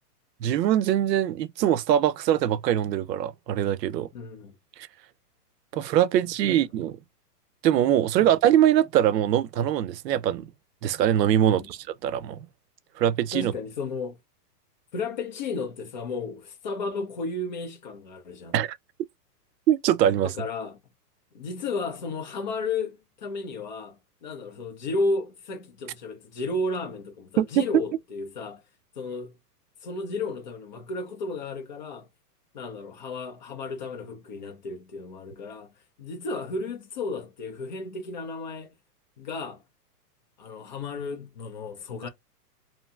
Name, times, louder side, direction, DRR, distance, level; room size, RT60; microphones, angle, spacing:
voice 1, 0.4-4.1 5.7-7.0 7.6-10.5 10.8-12.5 13.0-13.5 18.5-18.8 19.7-20.3 27.4-27.7, right 11 dB, 90° right, 0.6 m, -23 dB
voice 2, 4.1-4.6 6.5-6.6 8.2-8.3 11.4-11.7 13.3-14.2 14.9-18.5 20.2-20.8 21.3-28.6 29.0-29.4 29.8-32.1 32.5-35.7 36.0-38.8 39.2-39.6 40.4-42.1, left 3 dB, 30° left, 0.5 m, -33 dB
2.7 x 2.6 x 2.2 m
hypercardioid pair, 165°, 48 cm